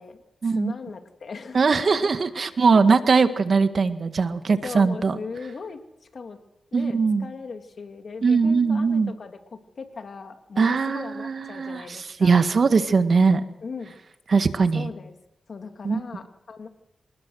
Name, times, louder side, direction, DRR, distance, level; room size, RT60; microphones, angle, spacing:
voice 1, 0.0-2.1 2.3-2.8 4.5-5.8 6.1-6.4 6.7-12.5 13.6-13.9 14.7-15.2 15.5-16.7, left 4 dB, 65° left, 6 dB, 2.5 m, -38 dB
voice 2, 1.5-5.2 6.7-7.3 8.2-9.1 10.6-11.8 12.2-13.4 14.3-14.9 15.8-16.0, right 4 dB, 60° right, 9 dB, 1.7 m, -20 dB
26.0 x 20.0 x 6.4 m, 0.88 s
cardioid pair, 55°, 0 cm